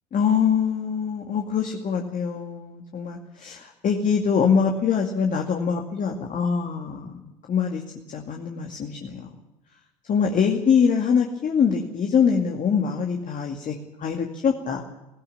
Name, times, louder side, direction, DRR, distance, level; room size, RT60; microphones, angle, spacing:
voice 1, 0.1-7.8 8.1-9.3 10.1-14.8, left 6 dB, 40° left, 2 dB, 2.3 m, -24 dB
19.5 x 17.0 x 8.6 m, 0.99 s
hypercardioid pair, 65°, 20 cm